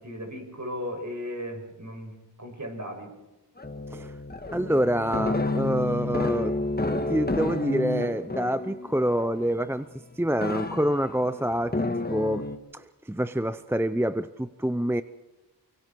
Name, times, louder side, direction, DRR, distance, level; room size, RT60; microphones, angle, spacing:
voice 1, 0.0-3.2, equal, 45° right, 3 dB, 7.2 m, -36 dB
sound 1, 3.6-9.7 10.4-12.6, left 2 dB, 25° left, 1.8 m, -30 dB
voice 2, 4.5-6.6 7.1-9.9 10.2-11.7 12.1-12.5 12.7-15.0, equal, 5° right, 13 dB, 0.6 m, -26 dB
24.5 x 24.0 x 4.7 m, 1.0 s
cardioid pair, 50°, 40 cm